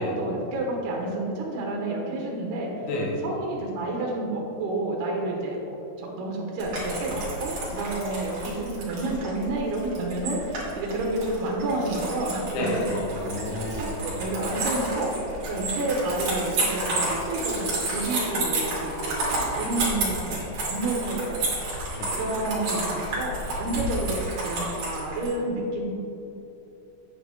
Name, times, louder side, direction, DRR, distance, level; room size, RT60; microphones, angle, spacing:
voice 1, 0.0-2.7 3.2-12.5 13.5-15.1 15.5-21.6 22.1-25.9, right 2 dB, 70° right, -1 dB, 2.8 m, -30 dB
voice 2, 2.8-3.2 12.5-14.0 21.9-22.2, left 1 dB, 75° left, -2 dB, 3.8 m, -30 dB
sound 1, 6.6-25.3, right 2 dB, 45° right, 2.8 m, -31 dB
8.8 x 8.8 x 3.6 m, 2.9 s
omnidirectional pair, 5.6 m